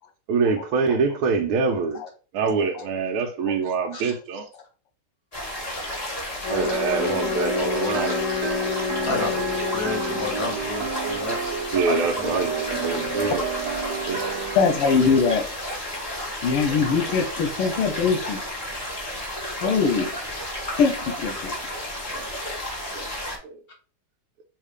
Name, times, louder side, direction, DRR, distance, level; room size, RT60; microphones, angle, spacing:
voice 1, 0.3-2.0 2.3-4.5 6.5-8.7 11.7-13.5 14.1-14.2 16.1-16.2 22.1-22.3 22.9-23.0 23.4-23.6, right 4 dB, 80° right, 1.6 m, -25 dB
sound 1, 5.3-23.4, left 1 dB, 15° left, 1.9 m, -32 dB
Wind instrument woodwind instrument, 6.4-10.6, left 9 dB, 60° left, 1.1 m, -29 dB
sound 2, 7.0-14.6, right 5 dB, 60° right, 1.2 m, -31 dB
voice 2, 9.0-11.4 11.9-12.3 12.6-13.1 13.5-14.3 15.7-15.8, left 3 dB, 45° left, 1.6 m, -32 dB
voice 3, 14.6-15.5 16.4-18.4 19.6-20.1 20.8-21.5, left 5 dB, 80° left, 1.7 m, -22 dB
6.4 x 3.2 x 5.0 m
omnidirectional pair, 2.4 m